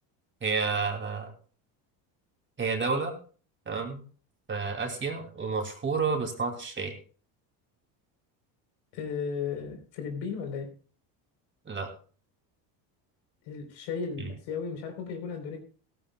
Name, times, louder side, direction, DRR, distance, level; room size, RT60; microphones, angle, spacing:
voice 1, 0.4-1.3 2.6-3.1 3.7-4.0 4.5-6.9 11.7-11.9 14.2-14.3, right 4 dB, 25° right, 4 dB, 2.8 m, -30 dB
voice 2, 8.9-10.7 13.5-15.6, left 6 dB, 80° left, 4 dB, 4.0 m, -35 dB
17.0 x 14.0 x 2.3 m, 0.40 s
supercardioid pair, 105°, 45 cm